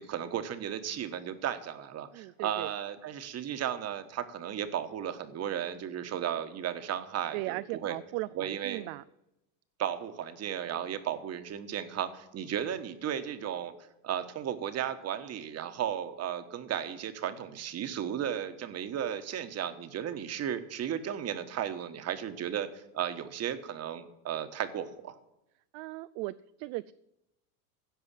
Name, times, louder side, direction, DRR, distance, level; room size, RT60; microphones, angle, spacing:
voice 1, 0.0-7.9 8.4-8.9 9.8-13.7 14.0-25.2, right 9 dB, 35° right, 10 dB, 1.4 m, -35 dB
voice 2, 2.1-2.7 7.3-9.0 25.7-26.9, right 19 dB, 50° right, 14 dB, 0.5 m, -37 dB
16.0 x 5.5 x 7.5 m, 0.87 s
supercardioid pair, 110°, 45 cm